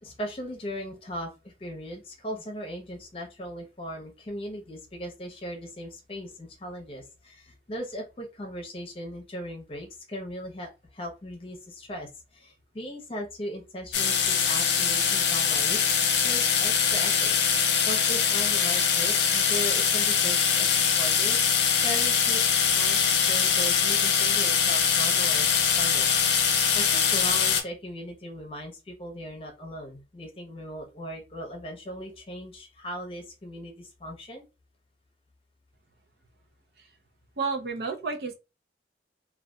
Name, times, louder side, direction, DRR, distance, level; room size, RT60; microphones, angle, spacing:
voice 1, 0.0-21.4 21.8-22.4 22.7-34.4, equal, 30° left, 1 dB, 0.7 m, -38 dB
sound 1, 13.9-27.6, left 7 dB, 85° left, 0.5 m, -23 dB
voice 2, 37.4-38.3, right 4 dB, 65° right, 3 dB, 0.5 m, -31 dB
2.6 x 2.3 x 2.2 m, 0.29 s
head